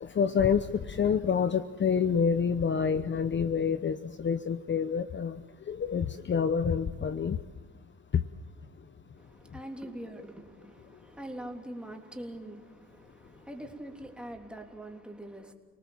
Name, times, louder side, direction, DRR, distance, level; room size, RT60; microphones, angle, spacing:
voice 1, 0.0-5.4 5.7-7.4, left 6 dB, 40° left, 0.9 m, -27 dB
voice 2, 9.2-15.5, right 1 dB, 5° right, 3.4 m, -43 dB
29.5 x 19.0 x 7.4 m
cardioid pair, 90°, 30 cm